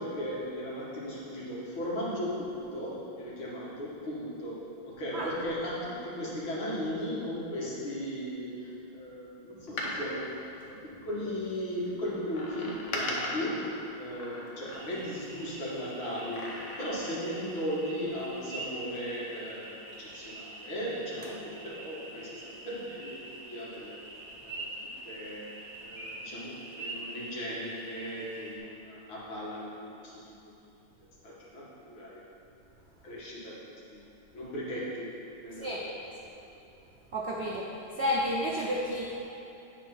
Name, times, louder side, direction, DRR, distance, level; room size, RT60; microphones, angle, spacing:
voice 1, 0.0-19.7 20.0-21.4 21.6-24.0 24.4-24.6 25.0-25.5 25.8-29.7 30.0-30.5 31.2-32.2 33.0-33.5 33.9-34.1 34.3-36.0 36.3-36.4, equal, 80° left, -7 dB, 2.6 m, -37 dB
Door, 9.6-11.4 12.3-15.2 16.1-17.3 17.6-17.7, left 1 dB, 45° left, 1.1 m, -39 dB
sound 1, 14.7-28.6, right 2 dB, 40° right, 1.3 m, -45 dB
voice 2, 37.1-37.7 38.0-39.2, equal, 70° right, -3 dB, 0.6 m, -31 dB
9.2 x 4.7 x 5.7 m, 2.9 s
omnidirectional pair, 2.2 m